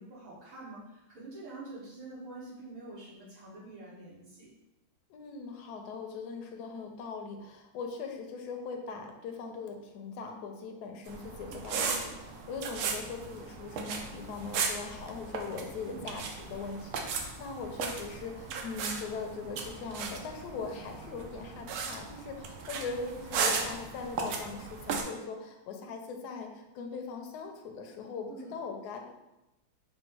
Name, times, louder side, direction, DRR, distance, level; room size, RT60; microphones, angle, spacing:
voice 1, 0.0-4.5 15.8-16.2 28.3-28.5, right 2 dB, 65° right, -11 dB, 2.1 m, -46 dB
voice 2, 5.1-29.1, left 4 dB, 70° left, 3 dB, 0.9 m, -40 dB
sound 1, 11.1-25.0, right 5 dB, 85° right, 1.5 m, -36 dB
5.0 x 2.0 x 4.5 m, 0.95 s
omnidirectional pair, 2.3 m